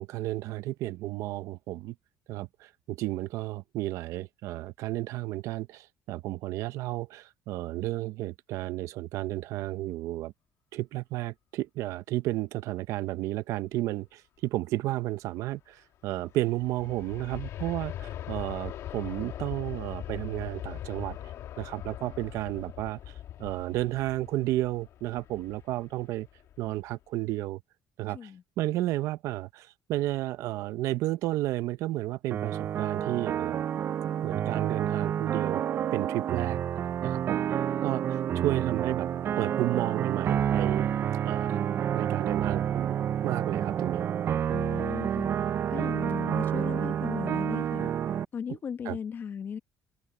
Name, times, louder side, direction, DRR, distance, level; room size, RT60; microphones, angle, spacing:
voice 1, 0.0-1.9 2.3-10.3 10.7-21.2 21.6-23.0 23.4-26.3 26.6-27.6 28.0-28.3 28.6-33.7 34.2-35.6 35.9-36.6 37.0-39.1 39.4-40.9 41.2-41.6 41.9-43.0 43.2-44.1 48.8-49.0, right 16 dB, 80° right, 0.7 m, -32 dB
Aircraft, 16.1-26.9 27.3-27.4, left 11 dB, 65° left, 1.6 m, -41 dB
sound 1, 32.3-48.2, right 9 dB, 45° right, 0.5 m, -29 dB
voice 2, 44.5-45.3 45.7-47.9 48.3-49.6, left 7 dB, 40° left, 1.6 m, -36 dB
cardioid pair, 120°, 5 cm